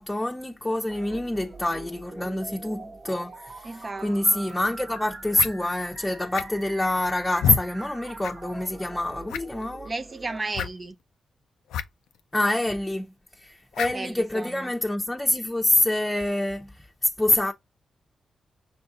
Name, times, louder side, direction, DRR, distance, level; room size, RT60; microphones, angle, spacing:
voice 1, 0.0-9.9 12.3-13.1 13.4-16.7 17.0-17.5, left 1 dB, 15° left, 0.6 m, -26 dB
sound 1, 0.9-10.4, right 3 dB, 55° right, 1.0 m, -43 dB
voice 2, 3.6-4.4 9.8-11.0 13.9-14.7, right 3 dB, 40° right, 0.5 m, -34 dB
sound 2, 4.5-4.6 5.3-5.5 6.3-6.7 7.4-7.6 8.2-8.3 8.6-8.7 9.3-9.6 10.5-10.7 11.7-11.8 12.1-12.2 13.7-14.0, left 9 dB, 90° left, 0.3 m, -28 dB
5.7 x 2.5 x 3.7 m
supercardioid pair, 45°, 0 cm